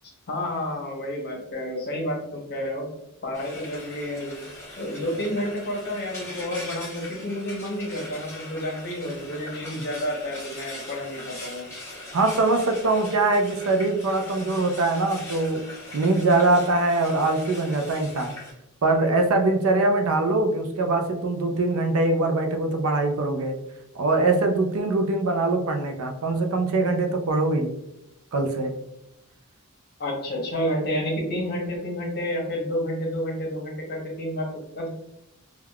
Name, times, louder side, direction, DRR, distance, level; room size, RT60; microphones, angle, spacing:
voice 1, 0.0-2.9 3.2-4.4 4.8-11.7 30.0-34.9, equal, 45° left, 0 dB, 0.8 m, -30 dB
Frying (food), 3.3-18.5, left 1 dB, 15° left, 0.8 m, -41 dB
voice 2, 12.1-15.6 15.9-18.3 18.8-23.6 24.0-27.7 28.3-28.7, right 2 dB, 70° right, 5 dB, 0.5 m, -22 dB
3.4 x 2.3 x 2.3 m, 0.83 s
head